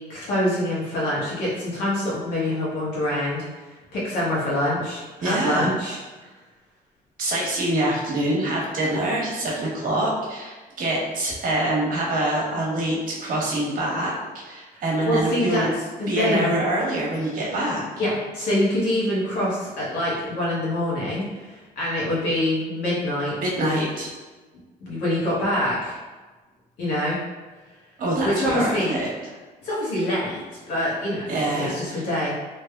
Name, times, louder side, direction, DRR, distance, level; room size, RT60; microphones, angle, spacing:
voice 1, 0.1-3.4 3.9-6.0 15.0-15.7 16.0-16.5 18.0-23.8 24.9-26.0 26.8-27.2 28.2-28.9 29.6-31.2 31.5-32.3, left 1 dB, 85° left, -7 dB, 1.4 m, -25 dB
voice 2, 5.2-5.7 7.2-14.1 14.4-15.7 16.1-17.8 23.4-24.1 28.0-29.1 31.3-32.0, right 1 dB, 55° right, -3 dB, 1.0 m, -25 dB
3.3 x 3.0 x 2.3 m, 1.3 s
cardioid pair, 110°, 17 cm